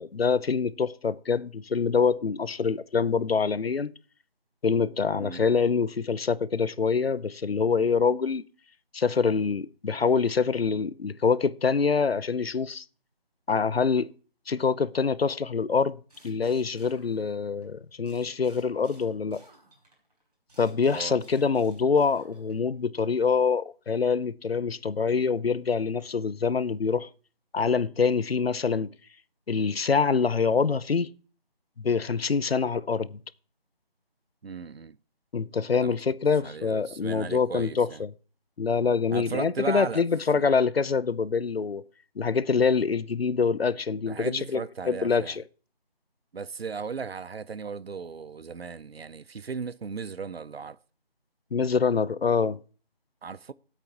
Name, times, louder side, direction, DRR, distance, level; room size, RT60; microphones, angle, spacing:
voice 1, 0.0-3.9 4.6-8.4 8.9-12.8 13.5-14.1 14.5-16.0 16.2-19.4 20.6-27.1 27.5-28.9 29.5-31.1 31.8-33.2 35.3-37.9 38.6-41.8 42.2-45.4 51.5-52.6, left 5 dB, 80° left, 0.7 m, -25 dB
voice 2, 5.1-5.4 20.8-21.2 34.4-35.0 35.7-36.0 36.4-38.0 39.1-40.0 40.3-40.4 44.1-45.4 46.3-50.8 53.2-53.5, right 5 dB, 85° right, 0.7 m, -36 dB
sound 1, 16.1-17.7 18.0-22.7, right 1 dB, 40° right, 5.1 m, -58 dB
16.5 x 8.4 x 2.9 m
figure-of-eight pair, 175°, 30 cm